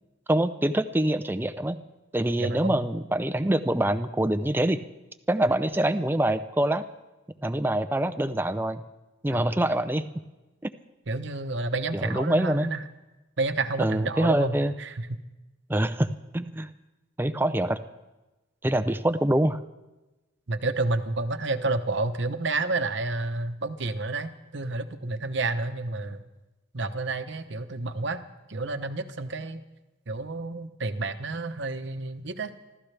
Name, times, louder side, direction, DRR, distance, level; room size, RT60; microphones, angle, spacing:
voice 1, 0.3-1.8 2.1-4.8 5.3-6.8 7.4-8.8 9.2-10.1 11.9-12.7 13.8-14.7 15.7-16.7 17.2-17.8 18.6-19.6, right 1 dB, 10° right, 12 dB, 0.5 m, -25 dB
voice 2, 2.4-2.9 9.3-9.4 11.1-12.8 13.4-15.1 20.5-26.2 26.7-28.2 28.5-29.6 30.1-32.6, right 3 dB, 60° right, 9 dB, 0.9 m, -30 dB
27.0 x 13.5 x 3.4 m, 1.1 s
head